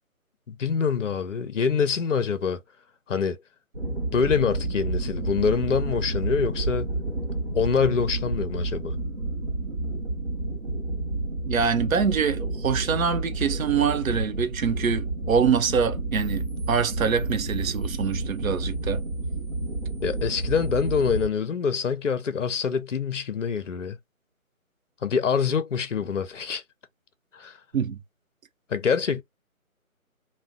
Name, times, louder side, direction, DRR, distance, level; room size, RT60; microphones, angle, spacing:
voice 1, 0.5-2.6 3.1-3.4 4.1-6.9 7.5-8.9 20.0-24.0 25.0-26.6 27.3-27.6 28.7-29.2, left 6 dB, 60° left, 0.6 m, -25 dB
sound 1, 3.7-21.3, right 2 dB, 35° right, 0.7 m, -30 dB
voice 2, 11.4-19.0 27.7-28.0, right 6 dB, 70° right, 0.6 m, -25 dB
2.5 x 2.2 x 3.6 m
figure-of-eight pair, 160°, 43 cm